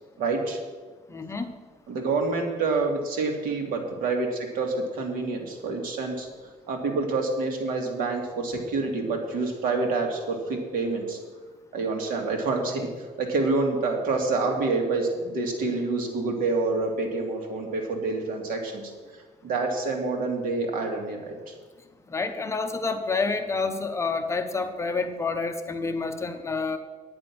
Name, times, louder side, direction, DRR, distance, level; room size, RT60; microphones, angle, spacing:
voice 1, 0.2-0.6 1.9-6.3 6.7-11.2 11.7-18.8 19.4-21.5, right 3 dB, 70° right, 2 dB, 2.4 m, -27 dB
voice 2, 1.1-1.5 22.1-26.8, left 4 dB, 20° left, 6 dB, 0.8 m, -28 dB
9.8 x 9.4 x 6.1 m, 1.4 s
cardioid pair, 150°, 15 cm